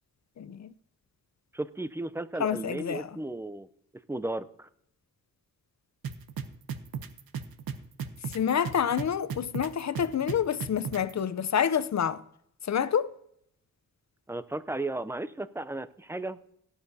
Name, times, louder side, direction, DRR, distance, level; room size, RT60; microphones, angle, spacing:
voice 1, 0.4-0.7 2.4-3.1 8.3-12.2 12.6-13.1, left 8 dB, 50° left, 0.6 m, -28 dB
voice 2, 1.5-3.7 4.1-4.7 14.3-16.4, right 2 dB, 5° right, 0.5 m, -35 dB
sound 1, 6.0-11.1, right 7 dB, 80° right, 0.9 m, -35 dB
17.5 x 8.9 x 2.7 m
cardioid pair, 85°, 35 cm